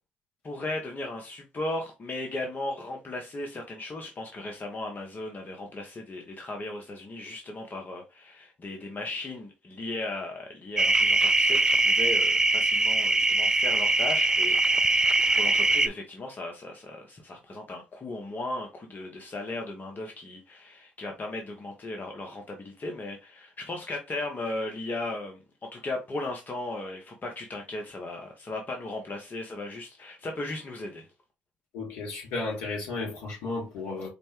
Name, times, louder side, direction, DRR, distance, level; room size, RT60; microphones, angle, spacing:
voice 1, 0.4-15.0 15.3-31.1, left 2 dB, 40° left, 0.9 m, -36 dB
sound 1, 10.8-15.9, right 2 dB, 15° right, 0.3 m, -22 dB
voice 2, 31.7-34.1, left 3 dB, 75° left, 2.6 m, -33 dB
5.1 x 2.2 x 3.0 m
hypercardioid pair, 55°, 5 cm